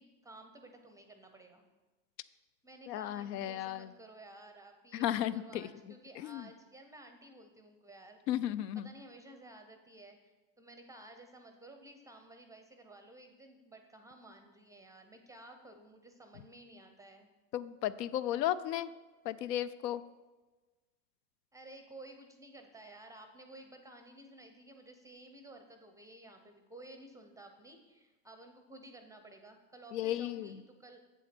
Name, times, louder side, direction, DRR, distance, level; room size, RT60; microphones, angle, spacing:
voice 1, 0.0-1.6 2.6-8.4 8.8-17.3 21.5-31.0, right 1 dB, 5° right, 6 dB, 0.5 m, -54 dB
voice 2, 2.9-3.9 4.9-5.7 6.2-6.5 8.3-8.9 17.5-18.9 19.2-20.0 29.9-30.6, left 12 dB, 75° left, 15 dB, 0.6 m, -34 dB
8.0 x 7.2 x 4.4 m, 1.2 s
hypercardioid pair, 110°, 50 cm